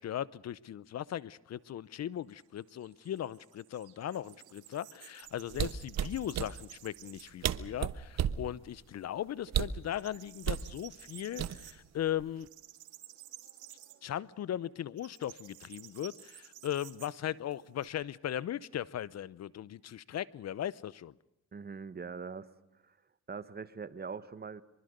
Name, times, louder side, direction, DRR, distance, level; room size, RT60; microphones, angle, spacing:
voice 1, 0.0-12.5 14.0-21.1, left 11 dB, 60° left, 22 dB, 0.8 m, -38 dB
sound 1, 1.6-7.5 7.9-8.0 8.4-9.2 9.4-17.9, right 13 dB, 90° right, 3.3 m, -54 dB
sound 2, 5.5-6.5 7.2-7.3 7.4-8.4 9.5-9.8 10.4-10.7 11.4-11.9 12.2-12.5, right 9 dB, 60° right, 1.3 m, -32 dB
voice 2, 21.5-22.5 22.8-22.9 23.3-24.6, right 5 dB, 30° right, 14 dB, 1.6 m, -42 dB
24.5 x 24.0 x 6.7 m, 0.89 s
cardioid pair, 90°, 30 cm